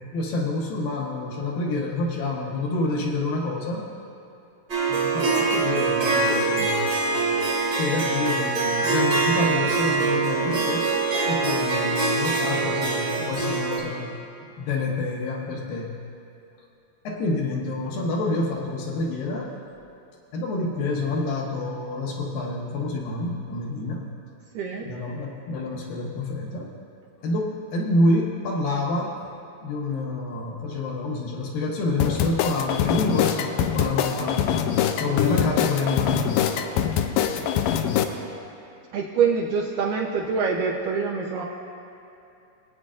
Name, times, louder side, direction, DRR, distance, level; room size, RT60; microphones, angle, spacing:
voice 1, 0.1-3.8 4.9-7.5 7.8-10.9 11.3-14.2 14.6-16.0 17.0-19.5 20.3-24.1 24.8-26.7 27.2-29.1 29.6-34.7 35.0-36.3, left 2 dB, 70° left, -2 dB, 2.6 m, -27 dB
Harp, 4.7-13.8, right 3 dB, 40° right, 1.7 m, -24 dB
voice 2, 24.5-24.9 38.9-41.5, right 5 dB, 75° right, -3 dB, 2.1 m, -25 dB
sound 1, 32.0-38.1, left 9 dB, 90° left, 1.9 m, -24 dB
22.5 x 8.7 x 2.5 m, 2.8 s
omnidirectional pair, 4.5 m